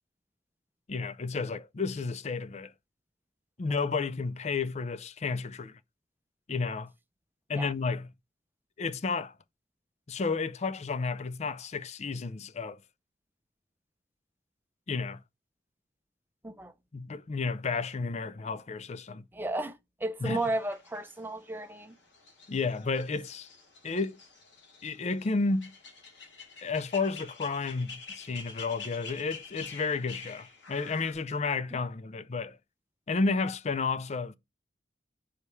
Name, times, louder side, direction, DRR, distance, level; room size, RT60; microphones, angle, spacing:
voice 1, 0.9-2.7 3.6-5.8 6.5-6.9 7.5-8.1 8.8-9.3 10.1-12.8 14.9-15.2 16.9-19.2 20.2-20.4 22.5-23.5 23.8-24.2 24.8-25.7 26.6-32.6 33.1-34.3, left 4 dB, 40° left, 0.4 m, -32 dB
voice 2, 19.3-19.8 20.0-21.9, right 2 dB, 10° right, 0.6 m, -33 dB
sound 1, 20.3-31.1, left 5 dB, 85° left, 2.6 m, -48 dB
5.1 x 4.2 x 4.7 m
head